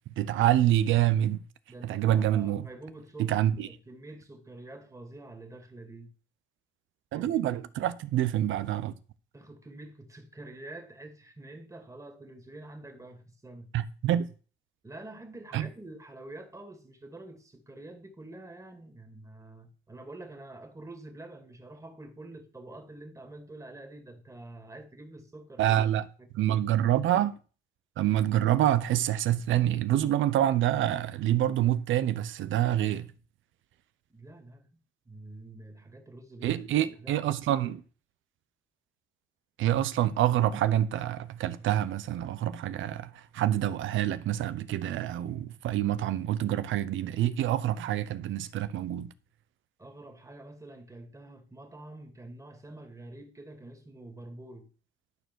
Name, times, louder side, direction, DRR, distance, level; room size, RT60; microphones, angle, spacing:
voice 1, 0.2-1.4 1.8-2.6 3.2-3.7 7.1-8.9 13.7-14.3 15.5-15.7 25.6-26.0 26.3-27.4 28.0-33.1 36.4-37.8 39.6-49.1, right 12 dB, 80° right, 0.8 m, -26 dB
voice 2, 1.7-6.1 7.1-7.4 9.3-13.7 14.8-26.3 34.1-34.7 35.1-37.3 49.8-54.7, right 2 dB, 15° right, 2.4 m, -47 dB
12.0 x 4.5 x 6.2 m
cardioid pair, 90°, 20 cm